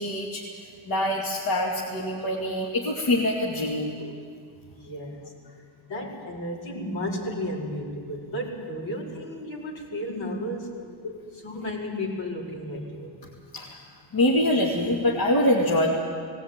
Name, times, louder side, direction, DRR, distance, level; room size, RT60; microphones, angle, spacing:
voice 1, 0.0-4.1 11.0-11.2 13.5-13.8 14.1-15.9, left 1 dB, 45° left, -2 dB, 2.5 m, -25 dB
voice 2, 4.7-5.3 5.9-10.8 11.3-13.1, left 1 dB, 65° left, -2 dB, 4.9 m, -33 dB
19.0 x 17.5 x 9.0 m, 2.1 s
cardioid pair, 125°, 49 cm